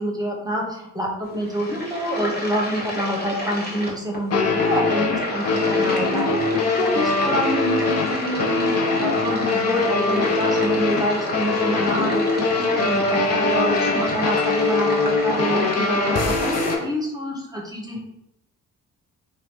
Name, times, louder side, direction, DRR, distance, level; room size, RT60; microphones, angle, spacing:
voice 1, 0.0-18.0, equal, 10° right, -1 dB, 1.0 m, -27 dB
sound 1, 1.2-16.8, left 1 dB, 25° left, 1.3 m, -31 dB
sound 2, 2.9-3.0 4.3-16.8, left 3 dB, 40° left, 0.6 m, -22 dB
3.1 x 2.5 x 2.9 m, 0.85 s
supercardioid pair, 45°, 39 cm